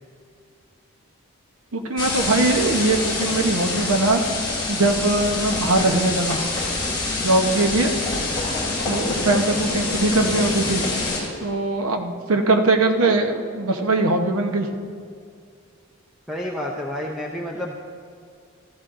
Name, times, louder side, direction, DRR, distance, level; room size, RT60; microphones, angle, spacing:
voice 1, 1.7-4.2 4.7-6.4 7.2-7.9 8.9-10.8 11.4-14.7, right 2 dB, 75° right, 5 dB, 0.9 m, -21 dB
sound 1, 2.0-11.2, left 2 dB, 20° left, 2.7 m, -26 dB
voice 2, 16.3-17.7, left 1 dB, ahead, -2 dB, 0.5 m, -29 dB
15.0 x 14.0 x 2.6 m, 2.2 s
head